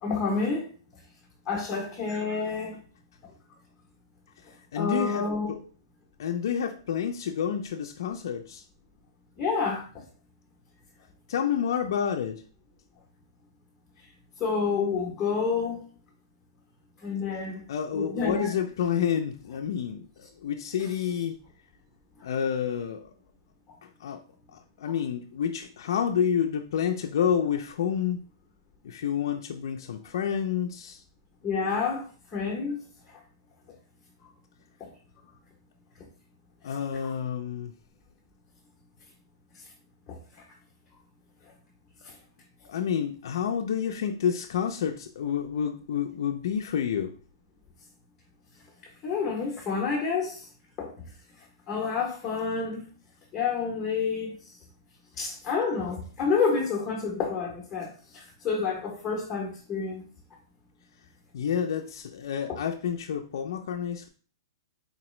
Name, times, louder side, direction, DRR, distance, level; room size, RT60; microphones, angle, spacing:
voice 1, 0.0-0.7 1.5-2.8 4.7-5.5 9.4-10.0 14.4-15.9 17.0-17.6 17.9-18.5 24.9-25.0 31.4-32.8 33.1-33.2 34.8-34.9 37.0-37.1 40.1-40.2 42.0-42.2 49.0-50.5 50.8-50.9 51.7-52.8 53.3-54.3 55.2-60.1 62.5-62.6, left 5 dB, 15° left, -3 dB, 0.7 m, -29 dB
voice 2, 4.7-5.6 6.2-8.6 11.3-12.4 17.7-21.4 22.2-23.0 23.8-24.2 24.5-28.2 28.8-31.0 36.6-37.7 42.7-47.1 61.3-64.1, left 8 dB, 55° left, 3 dB, 0.3 m, -29 dB
3.8 x 2.9 x 3.0 m, 0.40 s
hypercardioid pair, 175°, 2 cm